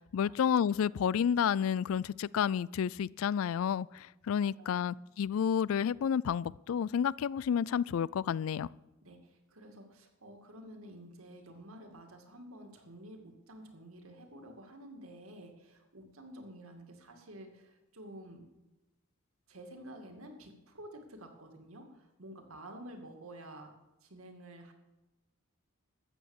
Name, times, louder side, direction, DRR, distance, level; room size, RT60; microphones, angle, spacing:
voice 1, 0.1-8.7, left 8 dB, 75° left, 23 dB, 0.3 m, -30 dB
voice 2, 4.4-4.8 9.0-18.4 19.5-23.7 24.0-24.7, right 1 dB, 85° right, 4 dB, 2.2 m, -50 dB
13.5 x 8.5 x 7.1 m, 1.0 s
head